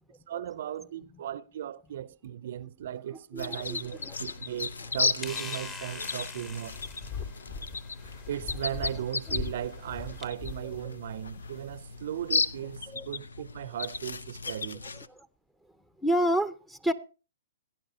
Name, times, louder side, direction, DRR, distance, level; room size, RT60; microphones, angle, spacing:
voice 1, 0.3-6.8 8.3-14.8, right 11 dB, 60° right, 0.5 m, -37 dB
voice 2, 3.1-4.2 4.8-4.9 8.7-9.4 10.6-10.9 12.9-13.1 14.8-15.0 16.0-16.9, equal, 5° left, 0.7 m, -31 dB
sound 1, 3.4-15.1, left 4 dB, 85° left, 0.6 m, -35 dB
sound 2, 3.4-10.3, left 4 dB, 25° left, 1.2 m, -47 dB
sound 3, 6.3-12.8, left 5 dB, 45° left, 2.1 m, -42 dB
17.5 x 10.0 x 2.8 m
hypercardioid pair, 130°, 0 cm